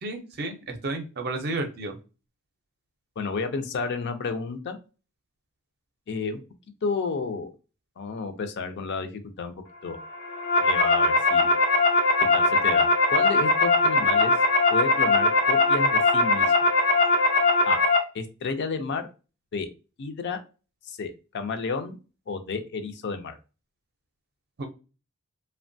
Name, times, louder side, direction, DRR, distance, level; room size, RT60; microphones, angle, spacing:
voice 1, 0.0-2.0 24.6-24.7, right 2 dB, 45° right, 5 dB, 0.6 m, -32 dB
voice 2, 3.2-4.8 6.1-6.4 6.8-7.5 8.0-9.6 9.8-10.0 10.6-11.5 12.3-14.3 14.7-16.5 17.6-17.8 18.1-19.1 19.5-19.7 20.0-20.4 20.9-22.0 22.3-23.4, left 4 dB, 50° left, 8 dB, 0.4 m, -31 dB
sound 1, 10.1-18.0, left 3 dB, 90° left, 0.7 m, -21 dB
2.9 x 2.2 x 2.5 m, 0.32 s
head